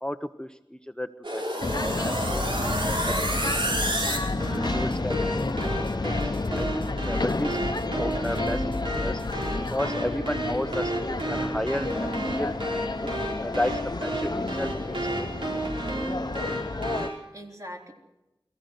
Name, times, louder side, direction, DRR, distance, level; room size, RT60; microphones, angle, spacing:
voice 1, 0.0-1.4 1.7-3.6 4.0-5.6 6.0-8.6 8.9-9.2 9.7-12.5 13.4-15.5, left 1 dB, 10° left, 8 dB, 0.7 m, -33 dB
sound 1, 1.2-17.1, right 1 dB, 85° right, 5.1 m, -31 dB
sound 2, 1.6-17.1, left 3 dB, 50° left, 0.8 m, -31 dB
sound 3, 2.3-9.8, left 2 dB, 75° left, 1.0 m, -36 dB
voice 2, 16.1-17.9, equal, 40° right, 1 dB, 3.7 m, -45 dB
23.0 x 14.5 x 8.0 m, 0.98 s
wide cardioid pair, 55°, 9 cm